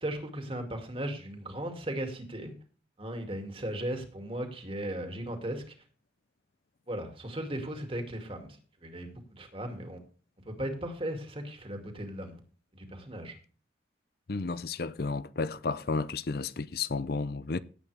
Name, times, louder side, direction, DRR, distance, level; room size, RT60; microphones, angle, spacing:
voice 1, 0.0-2.5 3.0-5.7 6.9-10.0 10.5-12.4 12.7-13.4, right 1 dB, 30° right, 2.5 m, -37 dB
voice 2, 14.3-17.6, left 4 dB, 55° left, 0.6 m, -32 dB
17.0 x 8.5 x 3.5 m
head